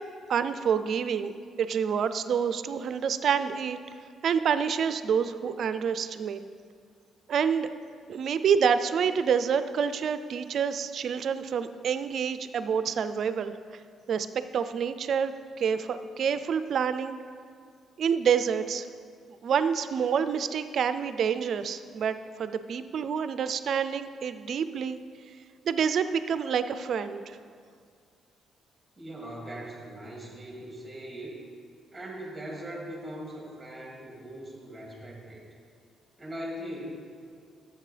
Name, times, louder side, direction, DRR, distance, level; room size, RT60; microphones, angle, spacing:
voice 1, 0.3-1.3 1.6-3.8 4.2-6.4 7.3-7.7 8.1-13.5 14.1-17.1 18.0-18.9 19.4-25.0 25.7-27.4, right 7 dB, 60° right, 12 dB, 0.4 m, -27 dB
voice 2, 29.0-31.4 31.9-35.4 36.2-37.1, equal, 10° right, -4 dB, 2.3 m, -40 dB
11.5 x 7.4 x 3.3 m, 2.1 s
cardioid pair, 90°, 0 cm